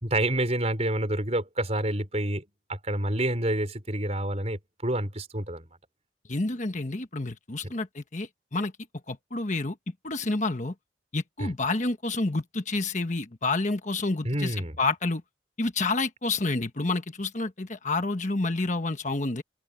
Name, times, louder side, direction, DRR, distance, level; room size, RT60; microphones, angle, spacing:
voice 1, 0.0-2.4 2.7-5.6 7.6-7.7 11.4-11.5 14.2-14.8, right 1 dB, 35° right, 4.7 m, -28 dB
voice 2, 6.3-8.7 9.1-9.8 10.0-10.7 11.1-15.2 15.6-19.4, left 3 dB, 40° left, 1.3 m, -29 dB
head